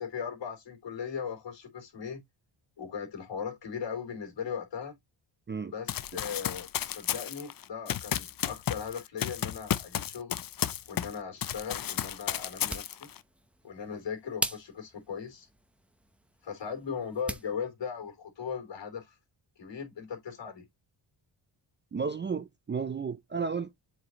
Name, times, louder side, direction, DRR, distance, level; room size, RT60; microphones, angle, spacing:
voice 1, 0.0-2.2 2.8-4.9 5.7-10.4 10.9-13.1 13.6-15.5 16.4-19.1 19.6-20.6, left 7 dB, 65° left, 3.1 m, -38 dB
Run, 5.9-11.2 11.4-13.2, left 10 dB, 45° left, 0.6 m, -33 dB
sound 1, 12.4-17.5, right 1 dB, 5° right, 0.8 m, -41 dB
voice 2, 21.9-23.7, right 5 dB, 25° right, 0.4 m, -33 dB
7.6 x 4.2 x 3.0 m
cardioid pair, 100°, 47 cm